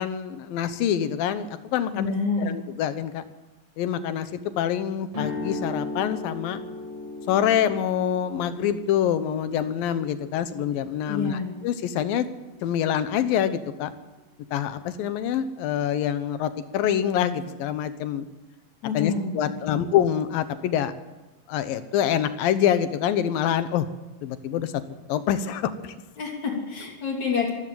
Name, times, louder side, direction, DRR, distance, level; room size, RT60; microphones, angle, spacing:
voice 1, 0.0-3.2 3.8-6.6 7.3-12.3 12.6-13.9 14.5-18.3 18.9-20.9 21.5-23.9 24.2-24.8 25.1-25.9, left 10 dB, 80° left, 12 dB, 2.8 m, -26 dB
voice 2, 1.9-2.5 11.1-11.5 18.8-19.3 19.7-19.8 26.2-27.5, left 5 dB, 55° left, 0 dB, 4.2 m, -27 dB
sound 1, 5.1-13.1, left 2 dB, 40° right, 8.0 m, -38 dB
25.0 x 14.0 x 7.8 m, 1.1 s
omnidirectional pair, 4.1 m